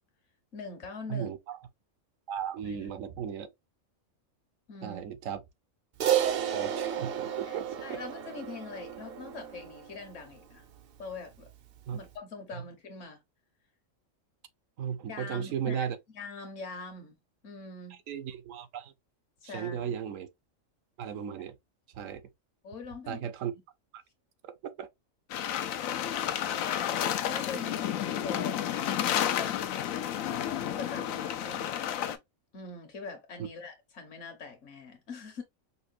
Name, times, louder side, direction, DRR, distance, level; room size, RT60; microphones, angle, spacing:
voice 1, 0.5-1.3 2.6-2.9 4.7-5.1 7.4-10.6 11.0-11.5 11.9-13.2 15.1-15.9 16.1-17.2 17.4-18.0 19.4-19.9 22.6-23.3 27.2-29.6 30.7-32.2 32.5-35.4, left 4 dB, 65° left, 1.3 m, -43 dB
voice 2, 1.1-1.6 2.3-3.5 4.8-5.4 6.2-8.0 11.9-12.0 12.5-12.6 14.8-16.0 18.1-18.9 19.4-20.3 21.0-21.5 21.9-22.2 23.1-23.5 23.9-24.0 24.6-24.9 33.4-33.5, right 8 dB, 75° right, 1.0 m, -35 dB
Crash cymbal, 6.0-10.6, right 10 dB, 60° right, 0.7 m, -32 dB
sound 1, 25.3-32.2, left 10 dB, 90° left, 1.0 m, -31 dB
5.5 x 2.2 x 2.4 m
omnidirectional pair, 1.4 m